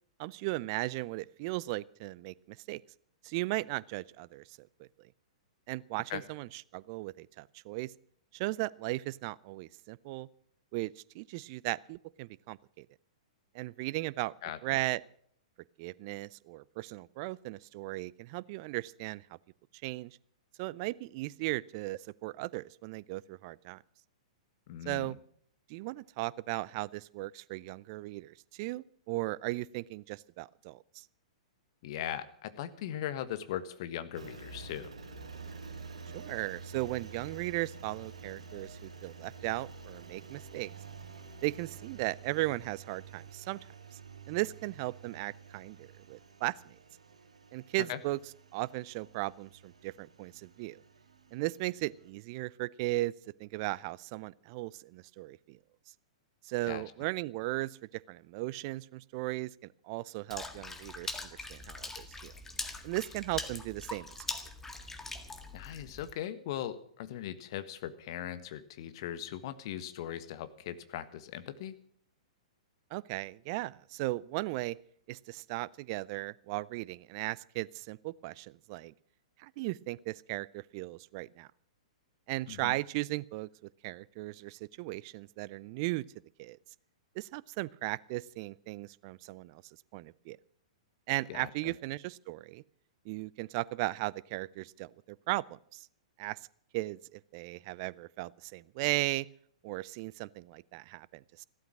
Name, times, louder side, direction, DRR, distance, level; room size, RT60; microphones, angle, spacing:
voice 1, 0.2-2.8 3.2-5.1 5.7-7.9 8.3-10.3 10.7-12.9 13.5-14.3 14.6-15.0 15.8-19.2 19.8-20.2 20.6-23.8 24.9-25.2 25.7-31.1 36.1-40.7 41.4-43.6 44.3-46.7 47.5-48.2 48.5-50.8 51.3-53.1 53.4-55.6 56.4-59.5 59.8-62.3 62.8-64.1 72.9-74.8 75.1-78.9 79.4-81.5 82.3-83.5 83.8-86.0 86.4-86.6 87.2-89.6 89.9-90.4 91.1-92.6 93.1-95.4 95.7-95.9 96.2-96.4 96.7-99.3 99.6-101.4, right 20 dB, 40° right, 22 dB, 0.5 m, -37 dB
voice 2, 14.4-14.8 24.7-25.1 31.8-34.9 47.9-48.0 56.7-56.8 65.5-71.7 82.5-82.8 91.3-91.7, left 11 dB, 45° left, 12 dB, 1.3 m, -39 dB
Engine, 34.1-52.1, right 5 dB, 75° right, 3.2 m, -49 dB
Water / Splash splatter, 60.3-66.1, left 3 dB, 10° left, 1.8 m, -42 dB
15.0 x 13.0 x 6.1 m, 0.63 s
figure-of-eight pair, 110°, 3 cm